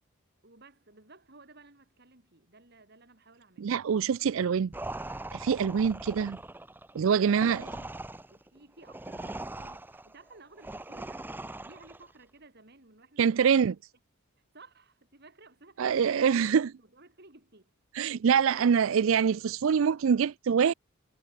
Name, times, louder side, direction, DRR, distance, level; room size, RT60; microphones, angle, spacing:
voice 1, 0.4-3.7 7.4-8.0 8.3-11.3 11.6-13.8 14.5-17.7, right 3 dB, 50° right, 3.5 m, -55 dB
voice 2, 3.6-4.7 5.3-6.4 6.9-7.6 13.2-13.7 15.8-16.7 17.9-20.7, right 7 dB, 65° right, 0.4 m, -25 dB
sound 1, 4.7-12.1, right 2 dB, 10° right, 0.5 m, -41 dB
head